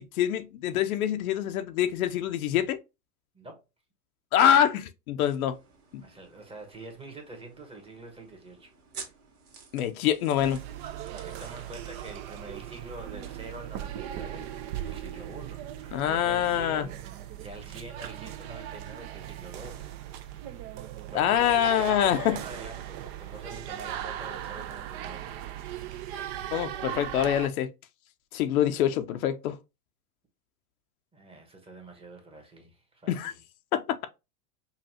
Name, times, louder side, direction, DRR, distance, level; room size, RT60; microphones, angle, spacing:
voice 1, 0.0-2.8 4.3-5.6 5.9-6.0 9.7-10.6 15.9-16.9 21.1-22.4 26.5-27.7 28.3-29.6 33.1-33.3 33.7-34.1, left 10 dB, 70° left, 0.7 m, -25 dB
sound 1, 5.4-13.6, right 5 dB, 75° right, 1.6 m, -51 dB
voice 2, 6.0-8.7 11.1-20.7 21.1-25.9 31.1-33.3, right 2 dB, 15° right, 1.1 m, -46 dB
sound 2, 10.4-27.5, right 11 dB, 45° right, 0.6 m, -38 dB
5.5 x 2.3 x 2.8 m
hypercardioid pair, 115°, 44 cm